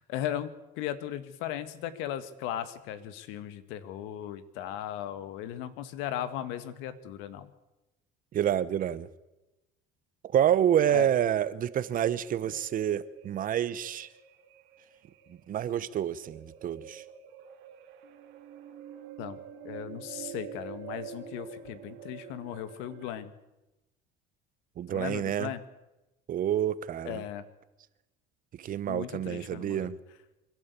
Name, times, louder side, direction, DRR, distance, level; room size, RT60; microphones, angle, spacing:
voice 1, 0.0-7.5 10.9-11.1 19.2-19.4 19.6-23.3 24.9-25.6 27.1-27.4 28.9-29.9, left 11 dB, 80° left, 1.8 m, -37 dB
voice 2, 8.3-9.1 10.3-14.1 15.5-17.0 24.8-25.5 26.3-27.2 28.6-30.0, right 10 dB, 45° right, 1.1 m, -28 dB
sound 1, 11.7-23.1, right 8 dB, 70° right, 2.4 m, -47 dB
25.5 x 12.0 x 8.4 m
cardioid pair, 115°, 19 cm